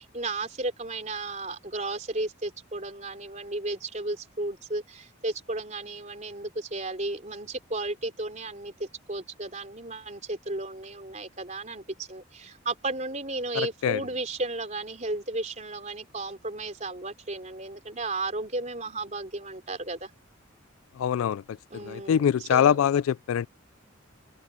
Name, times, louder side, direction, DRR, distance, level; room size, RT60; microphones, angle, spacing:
voice 1, 0.0-20.1 21.7-22.8, right 2 dB, 35° right, 3.7 m, -34 dB
voice 2, 13.6-14.0 21.0-23.5, left 9 dB, 85° left, 0.3 m, -24 dB
head